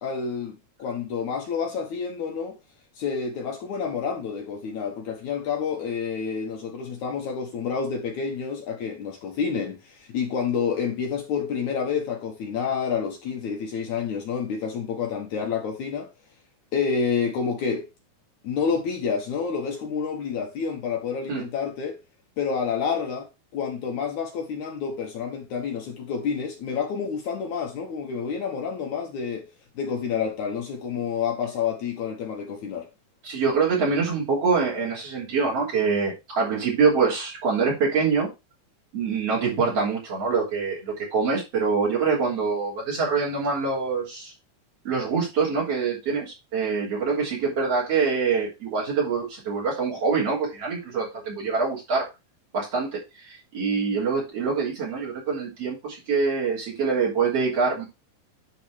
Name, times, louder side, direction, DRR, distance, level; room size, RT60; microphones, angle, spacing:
voice 1, 0.0-2.6 3.0-16.1 16.7-17.9 18.4-22.0 22.4-23.3 23.5-29.5 29.8-32.9, left 6 dB, 65° left, 2.5 m, -29 dB
voice 2, 33.2-38.3 38.9-44.3 44.8-52.1 52.5-57.8, right 5 dB, 45° right, 4.2 m, -25 dB
10.5 x 4.2 x 4.5 m
omnidirectional pair, 4.1 m